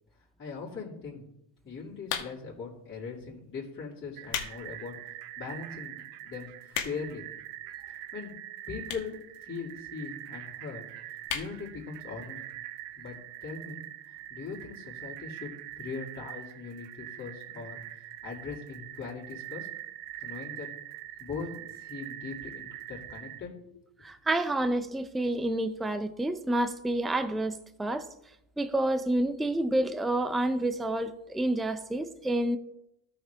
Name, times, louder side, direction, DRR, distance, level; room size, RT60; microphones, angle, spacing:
voice 1, 0.4-1.2 1.6-7.3 7.9-8.3 8.7-9.2 9.4-12.4 13.0-19.7 20.2-20.7 21.2-23.8, left 5 dB, 25° left, 2.7 m, -41 dB
sound 1, 2.0-2.6 3.3-3.5 4.0-4.6 5.0-5.1 5.7-5.8 6.0-6.1 6.3-7.2 8.0-8.1 8.8-9.2 9.5-9.6 9.8-9.9 10.1-10.2 10.5-10.7 11.2-11.5 11.9-12.0 12.2-12.3, left 9 dB, 85° left, 1.4 m, -34 dB
sound 2, 4.2-23.4, right 13 dB, 85° right, 0.8 m, -44 dB
voice 2, 24.0-28.1 28.6-32.6, right 1 dB, ahead, 0.4 m, -29 dB
14.0 x 5.9 x 3.4 m
supercardioid pair, 95°, 48 cm